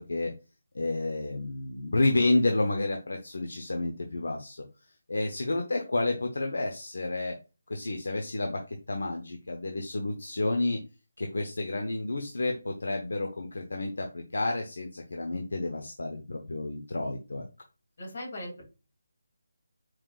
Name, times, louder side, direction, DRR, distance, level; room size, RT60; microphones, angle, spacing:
voice 1, 0.7-4.6 5.1-7.4 7.7-10.8 11.2-17.5, left 2 dB, 75° left, 3 dB, 0.8 m, -30 dB
voice 2, 18.0-18.6, left 1 dB, 50° left, 0 dB, 2.7 m, -38 dB
4.7 x 3.7 x 2.4 m, 0.30 s
figure-of-eight pair, 165°, 0 cm